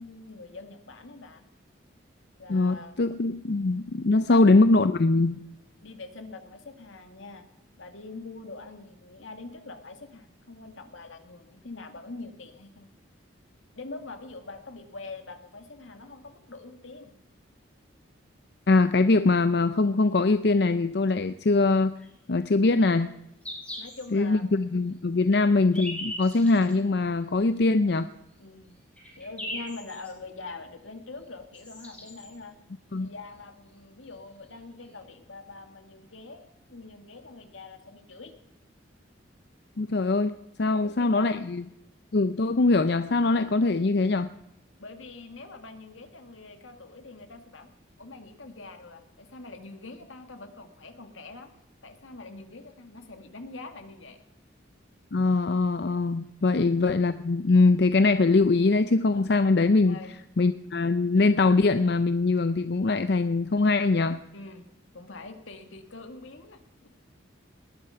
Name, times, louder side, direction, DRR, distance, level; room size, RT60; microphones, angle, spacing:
voice 1, 0.0-1.4 2.4-3.0 4.3-4.4 5.8-7.5 7.8-12.9 13.7-17.1 23.8-24.5 25.2-25.5 28.4-28.8 29.2-32.6 33.0-38.3 40.7-41.5 44.8-47.7 48.0-51.5 51.8-54.2 56.5-56.7 59.9-60.1 64.3-64.7 64.9-66.9, left 3 dB, 85° left, 7 dB, 2.1 m, -44 dB
voice 2, 2.5-5.4 18.7-21.9 22.3-23.1 24.1-28.1 32.9-33.1 39.8-41.6 42.1-44.3 55.1-60.0 60.4-64.2, left 3 dB, 55° left, 11 dB, 0.5 m, -22 dB
sound 1, 22.0-22.1 23.0-23.1 23.4-24.0 24.5-24.6 25.5-26.7 27.6-27.7 28.3-28.4 28.7-30.1 31.2-31.3 31.5-32.3 33.7-33.8 34.0-34.1 34.8-34.9, equal, 5° left, 7.1 m, -39 dB
19.5 x 11.5 x 5.8 m, 0.86 s
head